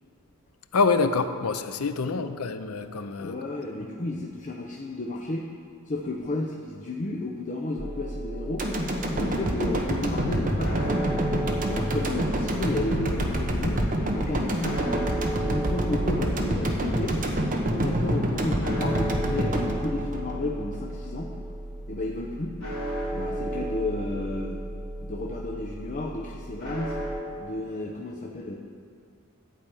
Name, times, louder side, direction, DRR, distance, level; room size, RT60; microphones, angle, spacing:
voice 1, 0.7-3.4, left 4 dB, 85° left, 9 dB, 0.6 m, -26 dB
voice 2, 3.2-5.5 5.9-8.7 9.1-11.2 11.7-14.9 15.4-17.2 17.7-21.3 21.9-22.5 23.1-24.6 25.0-27.0 27.4-28.6, left 2 dB, 35° left, 0 dB, 0.7 m, -32 dB
sound 1, 7.8-27.2, right 1 dB, 55° left, 2.9 m, -34 dB
sound 2, 8.6-20.8 21.2-21.3, equal, 40° right, 1.1 m, -27 dB
11.5 x 5.0 x 8.6 m, 2.1 s
head